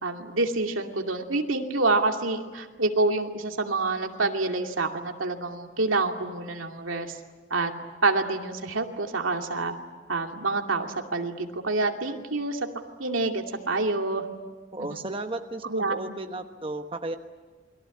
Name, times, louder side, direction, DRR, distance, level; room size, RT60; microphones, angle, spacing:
voice 1, 0.0-7.2 7.5-7.7 8.0-9.7 10.1-12.6 13.0-14.3 14.9-15.0 15.7-16.1, right 3 dB, 90° right, 3 dB, 2.6 m, -27 dB
voice 2, 14.7-17.2, right 2 dB, 25° right, 5 dB, 1.2 m, -34 dB
29.0 x 22.5 x 8.5 m, 1.3 s
head